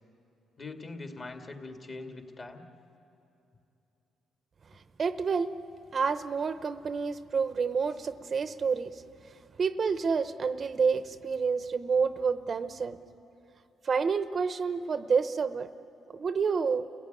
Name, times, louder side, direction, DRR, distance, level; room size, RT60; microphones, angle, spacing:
voice 1, 0.6-2.7 4.7-4.8, left 3 dB, 35° left, 5 dB, 2.3 m, -42 dB
voice 2, 5.0-5.5 5.9-9.0 9.6-13.0 13.8-15.7 16.1-16.8, right 5 dB, 45° right, 12 dB, 0.8 m, -28 dB
30.0 x 16.5 x 9.3 m, 2.8 s
cardioid pair, 90°, 0 cm